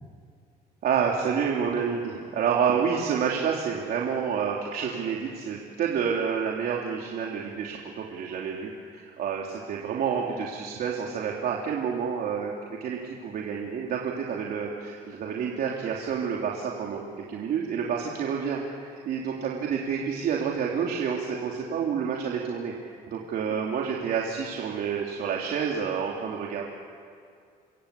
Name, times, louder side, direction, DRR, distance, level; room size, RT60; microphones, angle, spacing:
voice 1, 0.8-12.5 12.8-26.7, right 7 dB, 65° right, -2 dB, 3.4 m, -29 dB
26.5 x 26.0 x 8.5 m, 2.3 s
cardioid pair, 110°, 17 cm